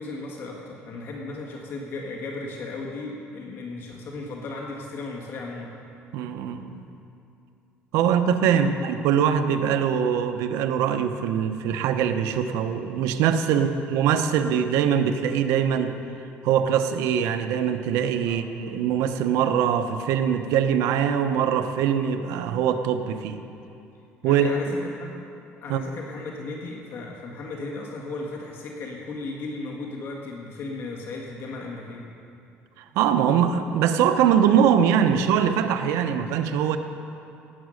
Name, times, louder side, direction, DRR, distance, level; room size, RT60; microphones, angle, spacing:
voice 1, 0.0-5.7 8.4-8.8 13.5-13.7 18.2-18.5 24.2-25.1 25.6-32.1, left 3 dB, 55° left, -1 dB, 1.7 m, -36 dB
voice 2, 6.1-6.8 7.9-15.9 16.4-23.4 24.2-24.6 25.7-25.8 32.9-36.8, right 8 dB, 90° right, 8 dB, 0.8 m, -22 dB
17.5 x 8.2 x 6.4 m, 2.6 s
cardioid pair, 135°, 5 cm